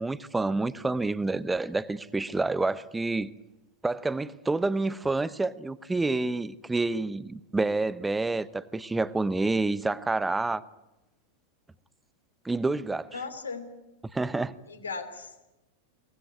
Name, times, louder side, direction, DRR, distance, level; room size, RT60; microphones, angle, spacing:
voice 1, 0.0-3.3 3.8-10.6 12.4-13.1 14.1-14.5, right 3 dB, 10° right, 0.9 m, -28 dB
voice 2, 13.1-13.7 14.7-15.4, left 4 dB, 75° left, 3.2 m, -37 dB
23.0 x 19.0 x 9.3 m
figure-of-eight pair, 90°, 0 cm